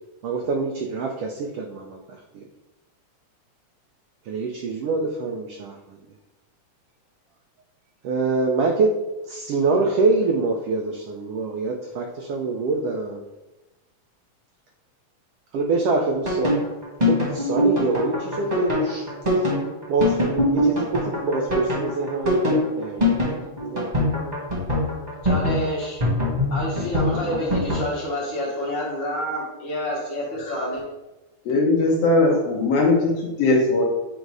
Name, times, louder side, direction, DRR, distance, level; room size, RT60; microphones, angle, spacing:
voice 1, 0.2-2.4 4.2-6.0 8.0-13.3 15.5-16.6 17.0-19.0 19.4-23.9, right 3 dB, 85° right, 2 dB, 1.3 m, -25 dB
sound 1, 16.3-27.8, left 1 dB, 20° right, 1.0 m, -22 dB
voice 2, 25.2-26.0 26.5-30.8, equal, 50° left, -4 dB, 1.7 m, -28 dB
voice 3, 31.5-33.8, left 2 dB, 70° left, -1 dB, 1.7 m, -19 dB
7.9 x 2.6 x 4.6 m, 1.0 s
omnidirectional pair, 3.3 m